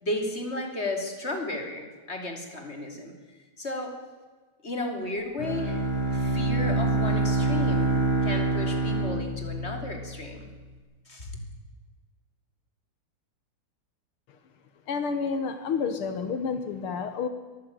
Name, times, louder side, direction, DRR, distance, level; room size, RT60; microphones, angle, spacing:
voice 1, 0.0-3.1 3.6-4.0 4.6-10.5 11.1-11.4, left 1 dB, 30° left, 4 dB, 3.6 m, -34 dB
Bowed string instrument, 5.4-10.4, right 2 dB, 20° right, 6.4 m, -26 dB
voice 2, 14.9-17.3, left 5 dB, 80° left, 9 dB, 2.2 m, -29 dB
22.0 x 15.0 x 9.0 m, 1.4 s
omnidirectional pair, 2.4 m